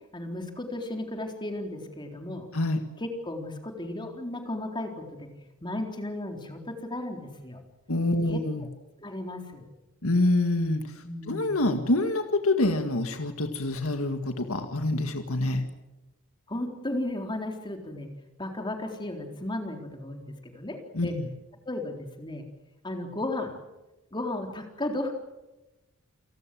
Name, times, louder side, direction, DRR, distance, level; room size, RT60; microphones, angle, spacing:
voice 1, 0.1-2.5 3.0-5.3 5.6-7.6 8.3-8.7 9.0-9.7 11.0-11.6 16.5-18.1 18.4-21.2 21.7-22.4 22.8-23.5 24.1-25.1, left 1 dB, 20° left, 3 dB, 4.0 m, -35 dB
voice 2, 7.9-8.7 10.0-15.6 20.9-21.3, left 2 dB, 70° left, 6 dB, 2.0 m, -26 dB
29.5 x 19.0 x 7.7 m, 1.0 s
head